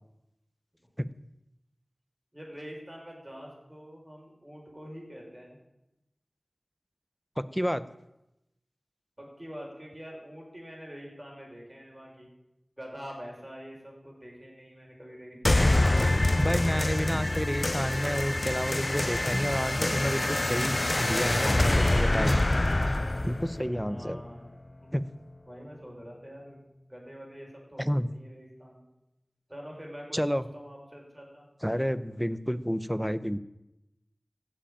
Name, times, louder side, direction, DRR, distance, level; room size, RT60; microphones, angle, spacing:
voice 1, 2.3-5.6 9.2-12.3 12.8-15.8 23.8-24.5 24.8-24.9 25.5-26.6 26.9-28.9 29.5-31.4, equal, 20° right, -1 dB, 6.0 m, -45 dB
voice 2, 7.4-7.8 16.4-22.4 23.2-24.2 24.9-25.0 27.8-28.1 30.1-30.5 31.6-33.4, equal, ahead, 14 dB, 0.8 m, -30 dB
sound 1, 15.4-24.5, left 1 dB, 40° left, 0.5 m, -26 dB
15.5 x 7.7 x 9.0 m, 0.90 s
wide cardioid pair, 50°, 0 cm